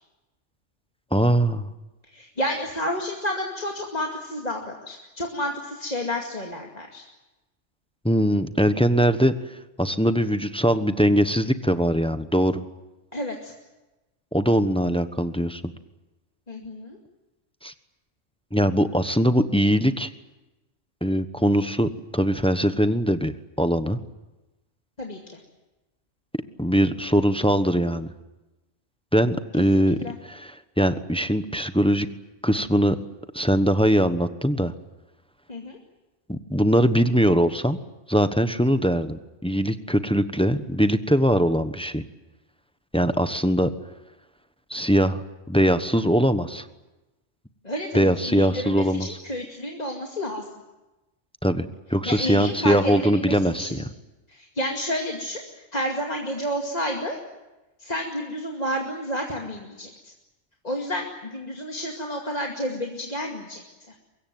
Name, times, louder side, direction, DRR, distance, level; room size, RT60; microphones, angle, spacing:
voice 1, 1.1-1.7 8.0-9.3 9.8-12.6 14.3-15.6 17.6-17.7 18.5-20.1 21.0-23.3 23.6-24.0 26.6-28.1 29.1-30.0 30.2-32.1 32.4-33.0 33.3-34.7 36.3-37.8 38.1-42.0 42.9-43.7 44.7-45.2 45.5-46.6 47.9-49.1 51.4-53.9, equal, 5° left, 10 dB, 1.0 m, -21 dB
voice 2, 2.1-7.0 13.1-13.5 16.5-17.0 25.0-25.4 29.8-30.1 35.5-35.8 47.6-50.4 52.0-52.9 53.2-53.7 54.3-55.4 55.7-57.2 57.8-59.9 60.6-63.9, equal, 35° left, 0 dB, 2.5 m, -30 dB
24.0 x 22.0 x 9.5 m, 1.0 s
omnidirectional pair, 1.3 m